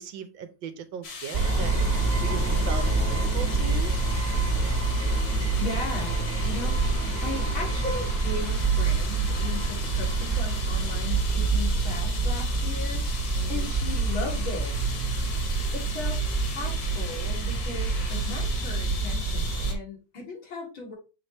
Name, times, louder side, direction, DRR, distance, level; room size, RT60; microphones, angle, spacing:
voice 1, 0.0-1.7 2.2-3.9 13.4-13.7, right 6 dB, 75° right, 9 dB, 1.5 m, -37 dB
sound 1, 1.0-19.7, left 5 dB, 55° left, 1.8 m, -39 dB
sound 2, 1.3-19.7, right 3 dB, 35° right, 1.2 m, -26 dB
voice 2, 5.6-6.8 7.2-13.0 13.5-14.8 15.7-20.9, left 3 dB, 85° left, -3 dB, 3.6 m, -37 dB
7.4 x 4.1 x 3.4 m, 0.30 s
omnidirectional pair, 2.1 m